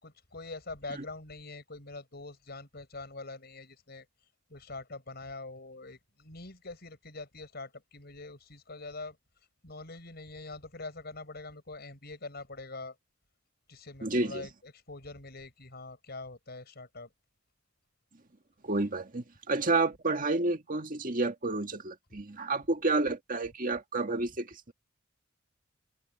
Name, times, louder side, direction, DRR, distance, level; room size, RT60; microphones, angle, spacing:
voice 1, 0.0-4.1 4.5-9.2 9.6-13.0 13.7-17.1, left 3 dB, 55° left, 6.1 m, -44 dB
voice 2, 14.0-14.5 18.6-24.7, right 3 dB, 45° right, 1.8 m, -30 dB
head